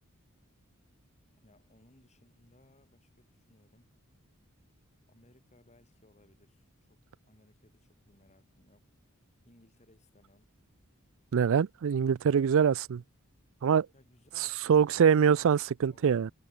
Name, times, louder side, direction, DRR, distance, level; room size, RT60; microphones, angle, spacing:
voice 1, 1.4-3.9 5.1-8.9 9.4-10.5 13.9-15.2 15.9-16.2, left 1 dB, 30° left, 5.0 m, -63 dB
voice 2, 11.3-13.0 13.6-13.9 14.7-16.3, right 7 dB, 65° right, 0.4 m, -24 dB
head